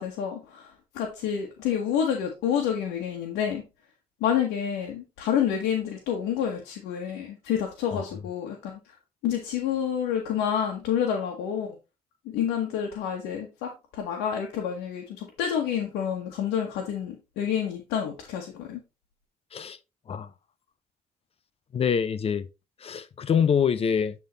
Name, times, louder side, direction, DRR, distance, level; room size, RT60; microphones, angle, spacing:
voice 1, 0.0-3.6 4.2-8.8 9.2-11.7 12.2-18.8, left 8 dB, 90° left, 1.3 m, -28 dB
voice 2, 21.7-22.4 22.8-24.1, left 7 dB, 35° left, 0.6 m, -25 dB
8.5 x 3.7 x 3.9 m
cardioid pair, 110°, 17 cm